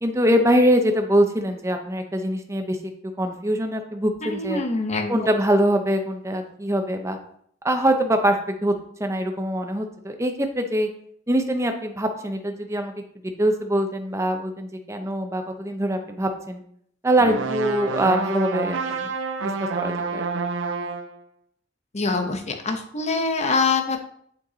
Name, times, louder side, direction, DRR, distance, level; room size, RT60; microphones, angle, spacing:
voice 1, 0.0-2.9 3.2-4.6 5.1-7.2 7.6-8.7 9.0-10.9 11.3-13.0 13.4-16.6 17.0-19.1 19.6-20.2, right 1 dB, 15° right, 5 dB, 0.7 m, -23 dB
voice 2, 4.2-5.1 21.9-24.0, left 4 dB, 35° left, 5 dB, 0.9 m, -24 dB
sound 1, 17.2-21.2, right 4 dB, 85° right, 0.6 m, -28 dB
7.7 x 4.6 x 4.0 m, 0.66 s
head